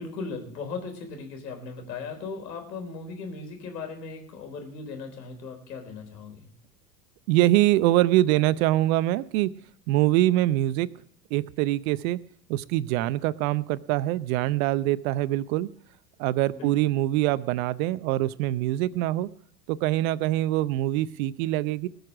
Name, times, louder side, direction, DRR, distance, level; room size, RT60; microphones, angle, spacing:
voice 1, 0.0-6.5 16.5-16.7, left 4 dB, 75° left, 4 dB, 4.0 m, -37 dB
voice 2, 7.3-9.5 9.9-10.9 11.3-12.2 12.5-15.7 16.2-19.3 19.7-21.9, right 15 dB, 55° right, 17 dB, 0.8 m, -24 dB
19.5 x 6.6 x 6.1 m, 0.65 s
hypercardioid pair, 90°, 50 cm